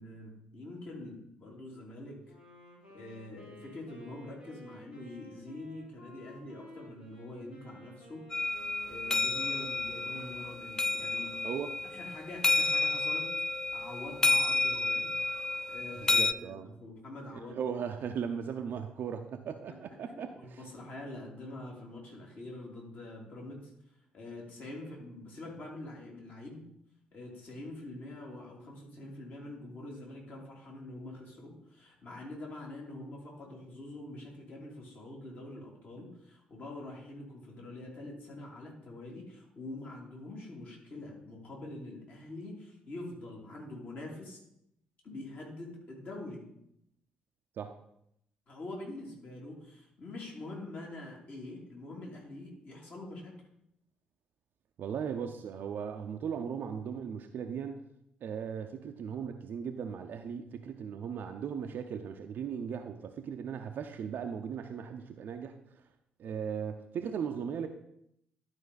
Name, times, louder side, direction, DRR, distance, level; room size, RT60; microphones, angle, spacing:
voice 1, 0.0-2.3 2.9-8.3 8.9-11.5 11.9-15.1 15.7-17.6 19.7-19.8 20.1-23.7 24.1-26.7 27.1-44.4 45.0-46.5 48.5-53.3, left 2 dB, 45° left, -2 dB, 2.6 m, -45 dB
Wind instrument woodwind instrument, 2.3-10.6, left 1 dB, 85° left, 1.6 m, -54 dB
sound 1, 8.3-16.3, left 3 dB, 15° left, 0.3 m, -30 dB
voice 2, 16.0-16.7 17.3-20.6 47.6-47.7 54.8-57.8 58.2-65.8 66.2-67.7, right 7 dB, 50° right, 5 dB, 0.6 m, -37 dB
11.5 x 4.8 x 4.0 m, 0.76 s
figure-of-eight pair, 45°, 4 cm